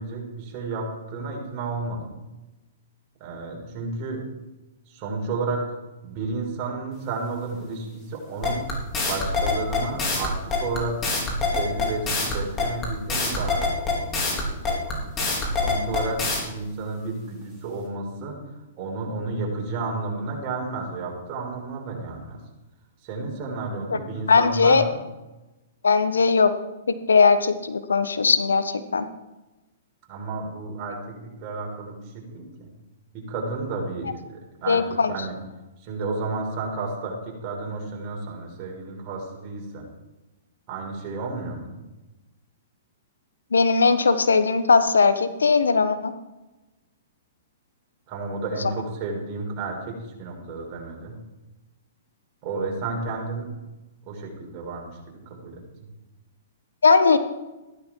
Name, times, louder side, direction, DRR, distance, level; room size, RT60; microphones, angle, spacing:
voice 1, 0.0-2.1 3.2-4.2 4.9-5.7 6.0-11.0 11.5-15.1 15.6-18.3 18.8-22.4 23.0-25.0 30.1-32.7 33.1-34.1 34.6-34.8 35.1-35.3 35.8-39.8 40.7-41.7 48.1-51.2 52.4-53.5 54.1-55.6, right 3 dB, 40° right, -1 dB, 6.1 m, -32 dB
sound 1, 8.4-16.4, left 4 dB, 25° left, 4.6 m, -25 dB
voice 2, 24.3-24.8 25.8-26.5 26.9-29.1 34.7-35.1 43.5-46.1 56.8-57.2, left 4 dB, 90° left, 10 dB, 1.3 m, -19 dB
15.5 x 12.5 x 4.7 m, 1.0 s
hypercardioid pair, 125°, 0 cm